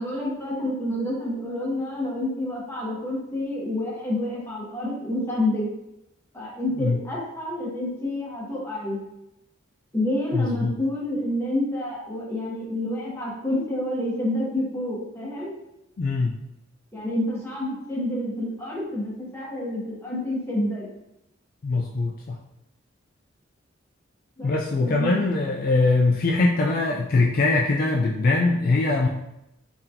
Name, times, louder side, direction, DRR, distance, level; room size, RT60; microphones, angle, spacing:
voice 1, 0.0-5.7 6.3-9.0 9.9-15.5 16.9-20.9 24.4-24.5 24.8-25.1, left 1 dB, 10° left, -5 dB, 1.1 m, -28 dB
voice 2, 10.3-10.7 16.0-16.4 21.6-22.4 24.4-29.1, left 3 dB, 45° left, -1 dB, 0.3 m, -22 dB
3.8 x 3.4 x 2.8 m, 0.86 s
head